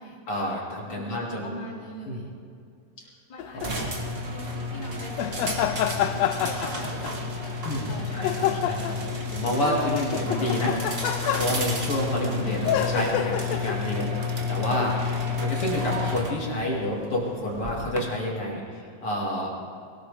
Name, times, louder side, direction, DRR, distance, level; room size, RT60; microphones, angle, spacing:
voice 1, 0.3-1.6 2.1-2.2 7.6-10.8 11.1-14.1 14.5-18.6 19.0-19.5, equal, 45° left, -3 dB, 2.9 m, -29 dB
voice 2, 0.9-2.3 3.3-4.0 4.3-5.7 6.1-8.6 14.1-14.3, left 1 dB, 15° left, -4 dB, 2.1 m, -43 dB
sound 1, 3.4-3.7 5.2-7.3 8.2-9.0 9.5-11.8 12.6-13.9 14.8-15.0, left 10 dB, 85° left, 1.4 m, -28 dB
sound 2, 3.6-18.0, left 3 dB, 65° right, 0.5 m, -31 dB
21.5 x 19.0 x 3.4 m, 2.4 s
omnidirectional pair, 3.7 m